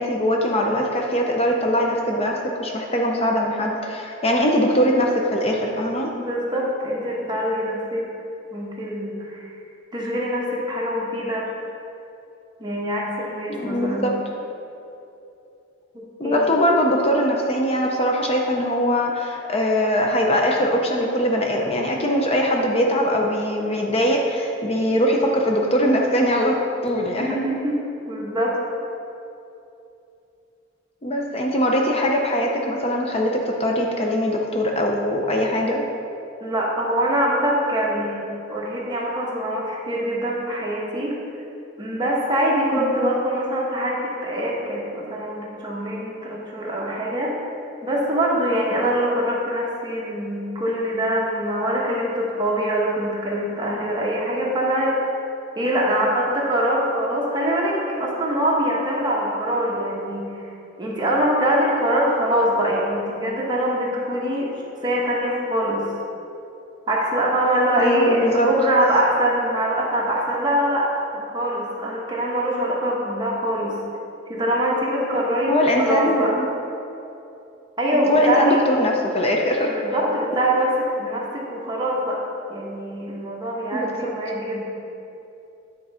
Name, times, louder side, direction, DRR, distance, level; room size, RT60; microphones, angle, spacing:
voice 1, 0.0-2.3 2.6-6.1 13.6-14.1 16.2-26.6 26.8-27.5 31.0-35.8 42.7-43.0 67.8-68.5 75.5-76.5 77.9-79.9 83.7-84.1, equal, 30° left, 1 dB, 0.6 m, -21 dB
voice 2, 6.1-8.1 8.5-9.5 9.9-11.5 12.6-14.1 15.9-16.5 27.1-27.8 28.1-28.6 36.4-38.2 38.5-41.2 41.8-47.3 47.8-55.0 55.5-60.2 60.8-64.5 64.8-65.8 66.9-73.8 74.3-76.3 77.8-78.6 79.6-82.2 82.5-84.7, right 1 dB, 25° right, -4 dB, 1.3 m, -23 dB
9.5 x 3.9 x 5.5 m, 2.8 s
head